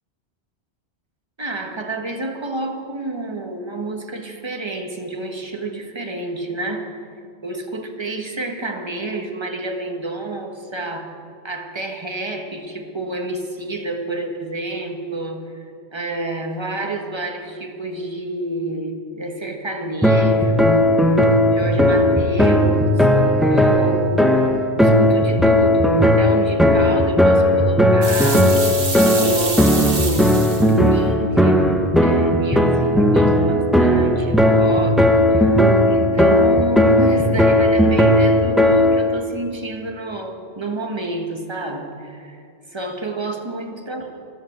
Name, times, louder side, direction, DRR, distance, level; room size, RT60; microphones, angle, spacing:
voice 1, 1.4-6.9 7.4-11.1 11.4-15.6 15.9-21.2 21.5-23.1 23.5-24.5 24.7-28.5 29.2-30.5 30.9-35.6 35.9-42.4 42.7-44.1, right 2 dB, 25° right, 3 dB, 1.4 m, -29 dB
sound 1, 20.0-39.1, left 1 dB, ahead, 1.1 m, -16 dB
sound 2, 28.0-30.8, right 3 dB, 55° right, 1.9 m, -27 dB
13.0 x 12.0 x 7.9 m, 2.4 s
omnidirectional pair, 1.1 m